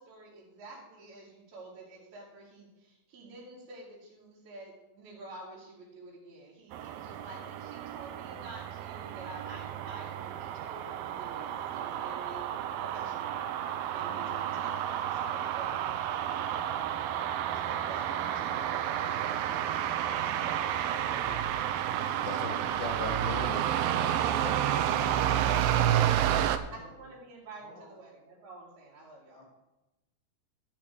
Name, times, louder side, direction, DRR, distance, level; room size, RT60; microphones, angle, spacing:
voice 1, 0.0-12.4 12.8-13.4 13.9-16.7 17.5-20.6 20.9-21.6 26.7-29.4, right 2 dB, 65° right, -9 dB, 4.1 m, -49 dB
sound 1, 6.7-26.6, right 10 dB, 85° right, 2.2 m, -31 dB
voice 2, 22.2-23.6 24.0-25.3, left 4 dB, 80° left, 4 dB, 3.9 m, -40 dB
voice 3, 23.4-23.8 25.3-26.9 27.6-28.0 29.3-29.4, left 1 dB, 50° left, -3 dB, 3.5 m, -51 dB
12.0 x 5.9 x 6.8 m, 0.99 s
omnidirectional pair, 4.9 m